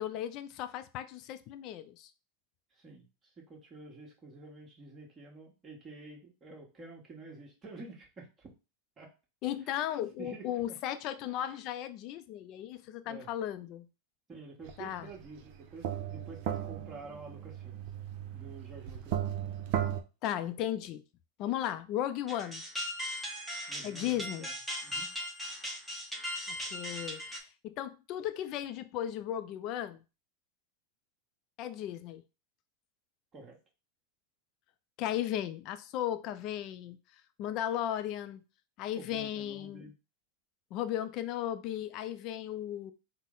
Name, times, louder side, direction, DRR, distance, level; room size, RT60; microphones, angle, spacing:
voice 1, 0.0-2.1 9.4-13.9 14.8-15.1 20.2-21.0 21.4-22.6 23.8-24.5 26.5-30.0 31.6-32.2 35.0-37.0 37.4-38.4 38.8-39.9 40.7-42.9, left 11 dB, 50° left, 0.4 m, -36 dB
voice 2, 3.5-8.5 9.0-9.1 10.2-10.8 11.4-11.5 13.1-13.3 14.3-17.8 18.3-19.2 23.7-24.5 24.8-25.1 33.3-33.6 39.0-39.9, right 3 dB, 25° right, 1.4 m, -49 dB
sound 1, 14.7-14.8 15.2-20.0, right 10 dB, 60° right, 0.6 m, -36 dB
sound 2, 22.3-27.4, left 1 dB, 5° right, 0.9 m, -38 dB
4.1 x 2.1 x 3.7 m
hypercardioid pair, 115°, 0 cm